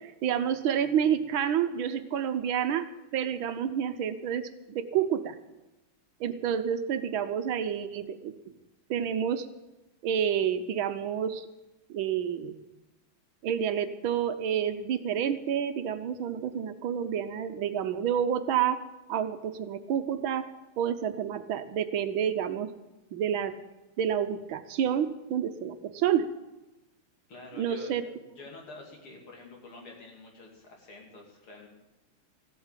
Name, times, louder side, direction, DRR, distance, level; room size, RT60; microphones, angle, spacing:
voice 1, 0.0-2.9 3.1-5.4 6.2-8.3 8.9-9.5 10.0-11.5 11.9-12.6 13.4-18.8 19.1-20.4 20.8-22.7 23.1-23.5 24.0-26.3 27.6-28.0, right 9 dB, 70° right, 10 dB, 1.6 m, -29 dB
voice 2, 27.3-31.7, left 3 dB, 80° left, 0 dB, 3.8 m, -47 dB
14.5 x 8.4 x 9.0 m, 1.0 s
omnidirectional pair, 2.3 m